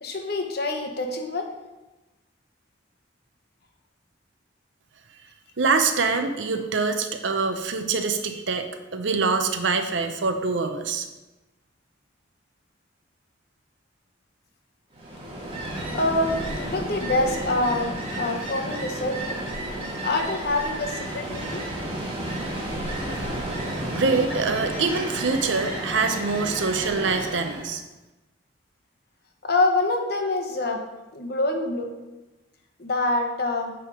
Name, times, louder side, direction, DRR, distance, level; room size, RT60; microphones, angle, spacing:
voice 1, 0.0-1.5 15.9-19.4 20.0-21.7 29.4-30.8 31.1-31.9 32.8-33.7, left 2 dB, 55° left, 3 dB, 1.0 m, -26 dB
voice 2, 5.6-11.1 23.9-27.8, right 4 dB, 70° right, 7 dB, 0.7 m, -25 dB
Ocean, 14.9-27.7, right 1 dB, 30° right, 1.4 m, -32 dB
8.6 x 3.5 x 5.0 m, 1.1 s
head